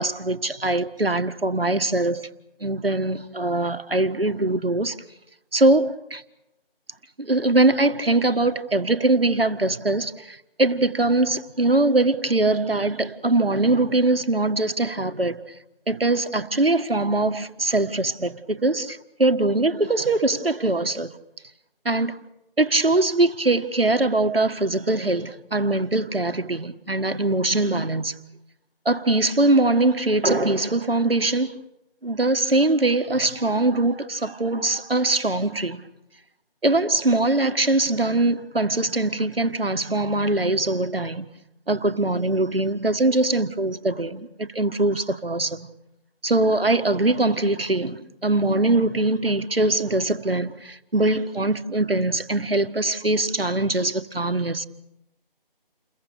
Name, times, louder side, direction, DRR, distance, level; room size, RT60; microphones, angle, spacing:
voice 1, 0.0-2.3 2.6-5.0 5.5-6.2 7.2-15.4 15.9-21.1 21.9-22.3 22.6-28.2 28.9-31.5 32.0-35.8 36.6-41.3 41.7-45.7 46.2-54.6, right 2 dB, 75° right, 1.8 m, -22 dB
29.5 x 22.0 x 6.9 m
figure-of-eight pair, 160°, 29 cm